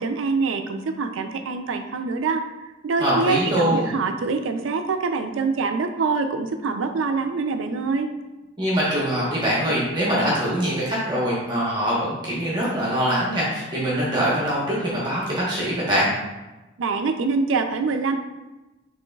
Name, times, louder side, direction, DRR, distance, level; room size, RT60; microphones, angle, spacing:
voice 1, 0.0-2.4 2.8-8.1 16.8-18.2, right 4 dB, 85° right, 7 dB, 0.4 m, -25 dB
voice 2, 3.0-3.9 8.6-16.1, equal, 20° right, -7 dB, 1.1 m, -23 dB
6.9 x 3.1 x 2.3 m, 1.1 s
head